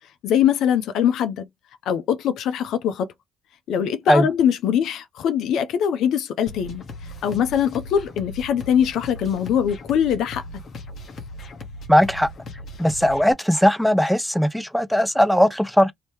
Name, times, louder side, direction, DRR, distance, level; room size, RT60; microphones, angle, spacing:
voice 1, 0.2-1.5 1.9-3.1 3.7-10.4, left 9 dB, 75° left, 0.6 m, -22 dB
sound 1, 6.5-13.3, left 1 dB, 55° left, 1.1 m, -38 dB
voice 2, 11.9-12.3 12.8-15.9, equal, 5° left, 0.5 m, -18 dB
3.0 x 2.8 x 3.3 m
supercardioid pair, 60°, 0 cm